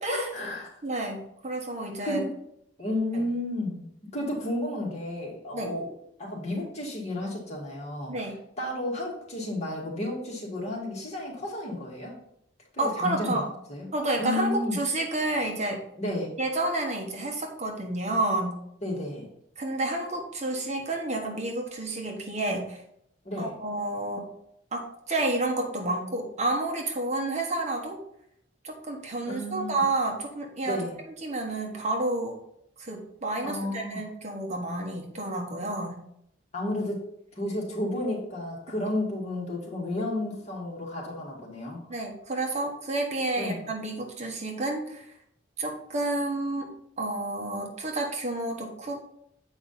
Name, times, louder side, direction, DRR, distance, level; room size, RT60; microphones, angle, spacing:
voice 1, 0.1-0.7 1.0-1.1 2.0-2.3 2.8-3.9 4.1-5.9 6.2-8.1 8.6-12.2 12.7-13.4 13.7-13.9 14.2-14.8 16.0-16.3 18.8-19.3 23.3-23.5 29.3-29.8 30.7-30.9 33.4-34.0 36.5-37.0 37.3-41.8 43.4-43.6, left 1 dB, 35° left, -2 dB, 2.0 m, -32 dB
voice 2, 0.8-2.2 3.1-3.3 5.5-5.8 8.1-8.4 12.8-13.5 13.9-15.8 16.4-18.6 19.6-22.8 23.4-24.3 24.7-28.0 28.6-30.8 31.2-32.4 32.8-36.0 41.9-45.1 45.6-46.7 47.0-49.0, right 2 dB, 40° right, 2 dB, 1.2 m, -30 dB
7.7 x 4.9 x 4.2 m, 0.74 s
head